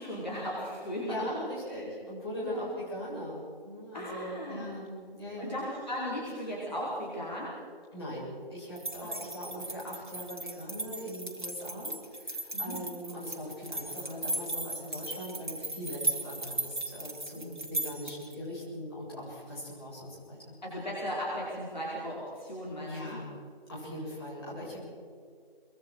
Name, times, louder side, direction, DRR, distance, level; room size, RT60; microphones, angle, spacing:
voice 1, 0.0-1.2 1.7-1.8 2.4-2.7 3.9-4.7 5.4-7.6 9.0-9.1 12.5-12.8 17.3-17.8 20.6-23.2 23.8-24.1, equal, 45° left, -6 dB, 5.0 m, -37 dB
voice 2, 1.0-5.6 7.9-20.5 22.8-23.3 23.7-24.8, equal, 25° left, -8 dB, 7.7 m, -40 dB
sound 1, 8.8-18.3, right 2 dB, 50° right, 2.9 m, -37 dB
24.0 x 22.5 x 4.8 m, 2.2 s
figure-of-eight pair, 170°, 30 cm